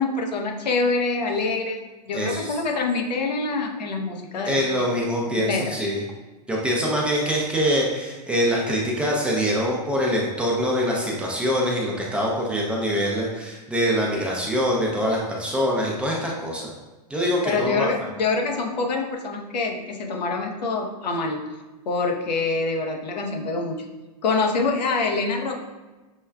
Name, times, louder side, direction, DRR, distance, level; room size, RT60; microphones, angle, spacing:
voice 1, 0.0-1.8 2.0-4.6 5.3-5.8 17.4-21.4 21.9-23.8 24.2-25.5, left 3 dB, 90° left, 2 dB, 0.7 m, -25 dB
voice 2, 2.1-2.5 4.5-6.0 6.5-16.7 17.1-17.9, equal, 5° right, -3 dB, 0.4 m, -24 dB
6.2 x 2.3 x 2.2 m, 1.2 s
hypercardioid pair, 145°, 21 cm